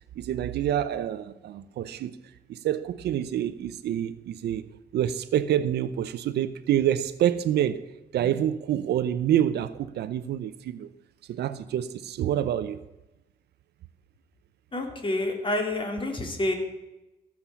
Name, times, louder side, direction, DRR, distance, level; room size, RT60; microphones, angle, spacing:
voice 1, 0.2-2.2 2.5-4.6 4.9-7.8 8.1-10.9 11.3-12.8, right 11 dB, 80° right, 14 dB, 0.7 m, -27 dB
voice 2, 14.7-16.5, left 1 dB, 30° left, 3 dB, 3.1 m, -28 dB
16.0 x 7.3 x 7.1 m, 1.0 s
cardioid pair, 80°, 17 cm